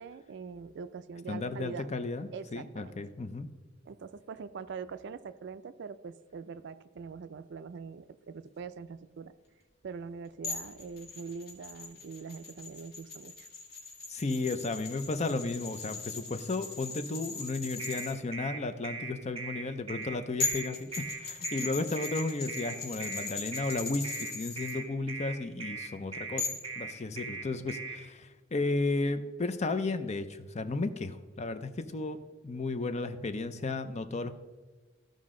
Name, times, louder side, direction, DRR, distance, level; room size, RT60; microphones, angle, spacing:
voice 1, 0.0-1.9 2.3-3.0 3.9-9.3 9.8-13.5 21.6-21.7, right 5 dB, 60° right, 14 dB, 0.4 m, -43 dB
voice 2, 1.3-3.5 14.1-32.2 32.4-34.4, left 3 dB, 35° left, 10 dB, 0.6 m, -34 dB
sound 1, 10.4-18.1 20.0-20.1 20.4-24.7 26.4-26.7, left 4 dB, 55° left, 2.0 m, -39 dB
sound 2, 17.8-28.0, right 4 dB, 30° right, 2.1 m, -39 dB
14.5 x 5.2 x 3.8 m, 1.3 s
head